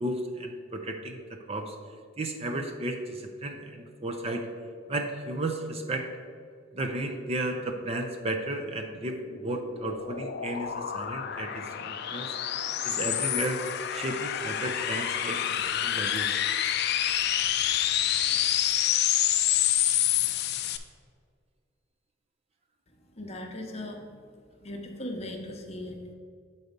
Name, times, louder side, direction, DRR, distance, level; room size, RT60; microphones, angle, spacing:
voice 1, 0.0-1.8 2.2-4.5 4.9-6.1 6.7-12.3 12.8-13.6 13.9-16.3, right 1 dB, 30° right, 4 dB, 0.5 m, -33 dB
sound 1, 9.0-20.8, left 11 dB, 50° left, 0.4 m, -28 dB
voice 2, 23.1-24.1 24.6-26.1, left 1 dB, 30° left, 2 dB, 0.8 m, -38 dB
8.0 x 4.1 x 5.1 m, 2.1 s
head